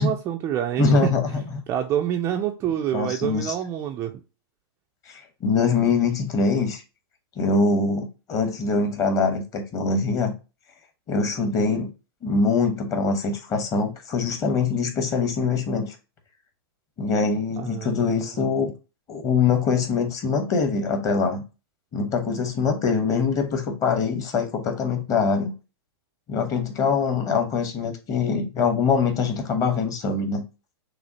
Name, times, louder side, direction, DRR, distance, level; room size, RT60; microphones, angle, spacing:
voice 1, 0.0-1.1 1.7-4.2 17.6-18.3, right 10 dB, 20° right, 4 dB, 0.3 m, -27 dB
voice 2, 0.8-1.6 2.9-3.5 5.1-6.8 7.4-10.3 11.1-11.9 12.2-16.0 17.0-18.7 19.1-21.4 21.9-25.5 26.3-30.5, left 4 dB, 25° left, 5 dB, 0.9 m, -23 dB
6.2 x 2.5 x 2.7 m, 0.30 s
hypercardioid pair, 150°, 14 cm